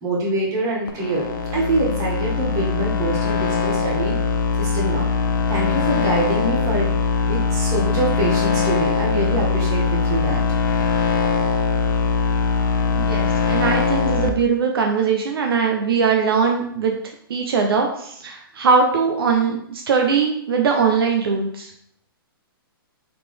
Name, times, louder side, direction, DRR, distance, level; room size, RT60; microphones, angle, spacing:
voice 1, 0.0-4.1 4.5-5.1 5.5-6.9 7.2-10.4, right 1 dB, 25° right, -4 dB, 1.7 m, -24 dB
sound 1, 0.9-14.3, left 5 dB, 55° left, 0.5 m, -21 dB
voice 2, 12.9-16.9 17.3-21.7, right 5 dB, 75° right, 2 dB, 0.7 m, -20 dB
4.0 x 3.2 x 3.3 m, 0.71 s
hypercardioid pair, 135°, 13 cm